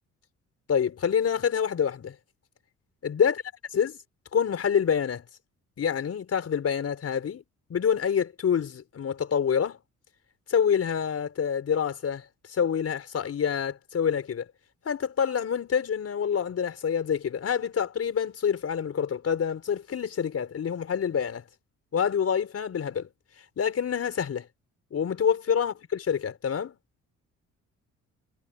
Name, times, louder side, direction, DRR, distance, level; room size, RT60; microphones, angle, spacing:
voice 1, 0.7-2.1 3.0-3.4 3.7-4.0 4.3-5.2 5.8-7.4 7.7-9.8 10.5-14.5 14.8-21.4 21.9-23.1 23.6-24.5 24.9-26.8, left 7 dB, 50° left, 5.0 m, -27 dB
cardioid pair, 90°, 30 cm